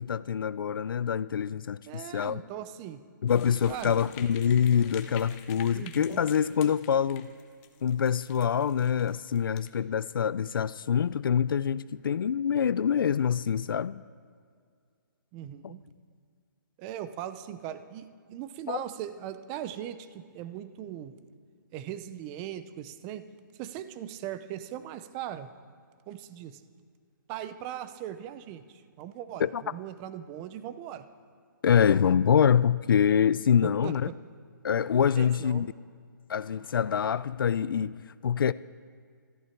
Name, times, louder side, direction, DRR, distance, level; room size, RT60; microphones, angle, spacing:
voice 1, 0.0-2.4 3.2-7.3 7.8-14.0 15.6-15.7 18.7-18.8 29.4-29.6 31.6-34.1 34.6-35.7 36.3-37.9 38.2-38.5, left 8 dB, 80° left, 0.4 m, -25 dB
voice 2, 1.9-3.0 3.7-4.0 5.7-6.3 15.3-15.8 16.8-21.2 21.7-23.2 23.6-25.5 26.1-26.6 27.3-31.1 33.8-33.9 35.1-35.7, right 11 dB, 15° right, 0.5 m, -39 dB
sound 1, 3.3-9.7, left 9 dB, 20° left, 0.7 m, -50 dB
20.5 x 14.0 x 4.6 m
hypercardioid pair, 165°, 11 cm